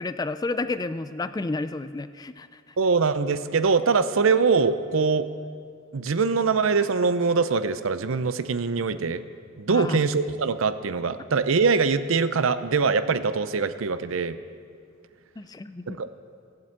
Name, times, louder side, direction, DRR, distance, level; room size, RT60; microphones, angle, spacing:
voice 1, 0.0-2.7 9.7-10.0 15.4-16.0, left 3 dB, 20° left, 12 dB, 0.3 m, -31 dB
voice 2, 2.8-5.3 5.9-9.2 9.6-14.4 15.9-16.1, right 4 dB, 75° right, 12 dB, 0.6 m, -23 dB
14.5 x 7.7 x 8.7 m, 2.2 s
head